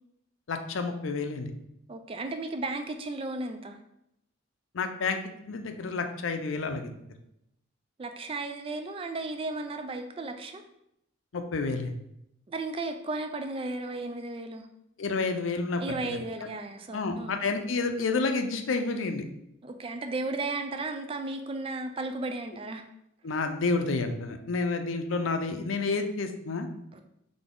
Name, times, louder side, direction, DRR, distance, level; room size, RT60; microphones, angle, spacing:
voice 1, 0.5-1.5 4.7-6.9 11.3-12.0 15.0-16.2 16.9-19.2 23.2-26.7, left 3 dB, 75° left, 6 dB, 0.5 m, -30 dB
voice 2, 1.9-3.8 8.0-10.6 12.5-14.7 15.8-17.3 19.6-22.8 26.9-27.0, right 2 dB, 25° right, 6 dB, 0.3 m, -34 dB
4.1 x 3.3 x 3.6 m, 0.80 s
head